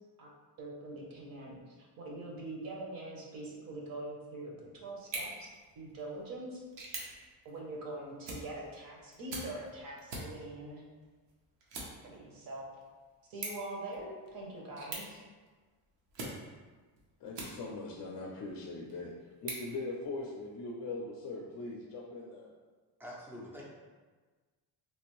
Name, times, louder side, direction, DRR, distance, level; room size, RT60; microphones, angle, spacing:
voice 1, 0.6-5.5 5.8-6.6 7.4-10.8 12.0-12.7 13.3-15.2, right 2 dB, 55° right, -2 dB, 0.8 m, -43 dB
sound 1, 5.0-18.0 18.5-20.5, right 2 dB, 90° right, 0.9 m, -47 dB
voice 2, 17.2-19.1 19.4-22.5, left 3 dB, 55° left, -2 dB, 0.5 m, -41 dB
voice 3, 23.0-23.6, equal, 5° right, -4 dB, 0.3 m, -45 dB
3.2 x 2.5 x 3.0 m, 1.4 s
cardioid pair, 175°, 42 cm